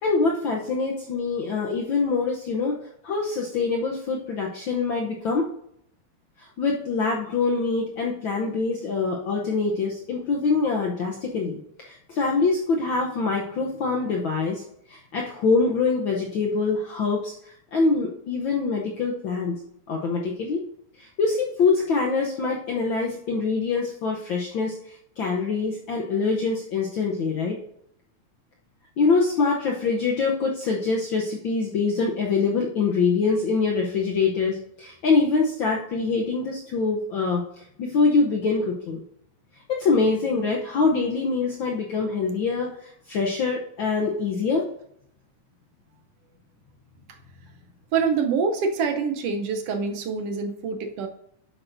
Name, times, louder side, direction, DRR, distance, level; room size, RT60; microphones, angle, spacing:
voice 1, 0.0-2.8 3.0-5.4 6.4-14.6 14.9-19.6 19.9-20.6 21.0-27.6 29.0-39.0 39.7-44.7, left 4 dB, 85° left, -1 dB, 1.0 m, -24 dB
voice 2, 47.9-51.1, right 5 dB, 70° right, 5 dB, 1.5 m, -25 dB
10.5 x 7.9 x 2.6 m, 0.72 s
omnidirectional pair, 3.4 m